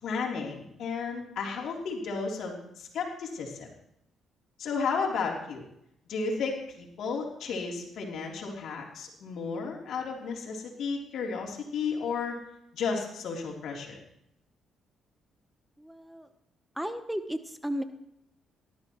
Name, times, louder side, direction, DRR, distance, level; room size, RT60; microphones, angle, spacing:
voice 1, 0.0-3.7 4.6-5.6 6.1-12.4 12.7-14.0, left 5 dB, 70° left, -1 dB, 3.4 m, -33 dB
voice 2, 15.8-16.3 16.8-17.8, equal, 5° right, 9 dB, 1.0 m, -34 dB
18.5 x 12.5 x 3.1 m, 0.75 s
supercardioid pair, 65°, 0 cm